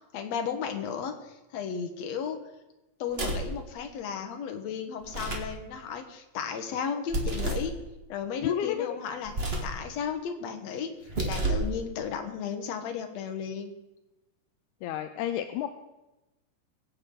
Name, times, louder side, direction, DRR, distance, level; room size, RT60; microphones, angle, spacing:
voice 1, 0.1-2.4 3.0-7.7 8.1-10.9 11.2-13.7, left 6 dB, 65° left, 5 dB, 2.2 m, -34 dB
sound 1, 3.1-3.6 5.0-5.6 7.1-7.7 9.3-9.8 11.0-11.7, right 2 dB, 60° right, 0.6 m, -30 dB
voice 2, 8.4-9.0 14.8-15.7, left 11 dB, 80° left, 8 dB, 1.9 m, -30 dB
22.5 x 7.8 x 3.8 m, 1.0 s
omnidirectional pair, 3.5 m